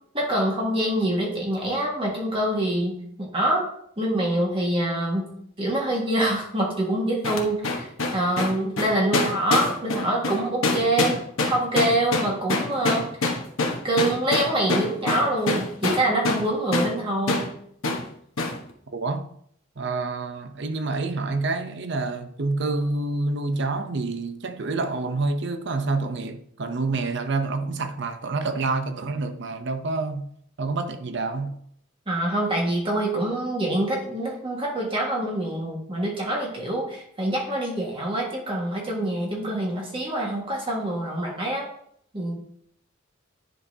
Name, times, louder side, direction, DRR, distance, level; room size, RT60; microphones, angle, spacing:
voice 1, 0.1-3.6 4.0-5.3 5.6-13.3 13.8-17.5 32.1-41.6 42.1-42.3, right 1 dB, 25° right, 1.6 m, -25 dB
sound 1, 7.2-16.5 16.7-16.9 17.3-17.5 17.8-18.0 18.4-18.6, left 2 dB, 90° left, 1.2 m, -25 dB
voice 2, 18.9-19.3 19.8-30.3 30.6-31.6, right 3 dB, 60° right, 0.7 m, -27 dB
10.0 x 5.2 x 2.8 m
head